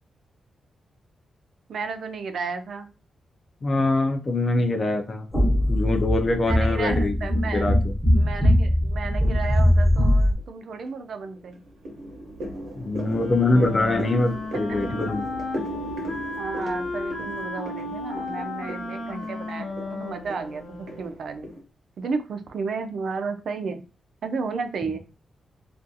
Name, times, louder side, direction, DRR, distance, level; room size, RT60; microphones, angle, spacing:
voice 1, 1.7-2.9 6.4-7.7 8.1-11.6 16.4-21.5 22.0-23.8 24.2-25.0, right 4 dB, 55° right, 7 dB, 0.3 m, -33 dB
voice 2, 3.6-5.3 5.7-7.1 7.5-7.9 12.8-15.2, left 2 dB, 25° left, 5 dB, 0.3 m, -23 dB
sound 1, 5.3-10.3, equal, 5° left, 0.7 m, -21 dB
sound 2, 9.9-10.4 10.9-21.6, equal, 90° right, 0.7 m, -37 dB
Wind instrument woodwind instrument, 13.0-21.1, left 2 dB, 75° left, 0.7 m, -34 dB
2.4 x 2.3 x 2.6 m, 0.32 s
wide cardioid pair, 180°, 0 cm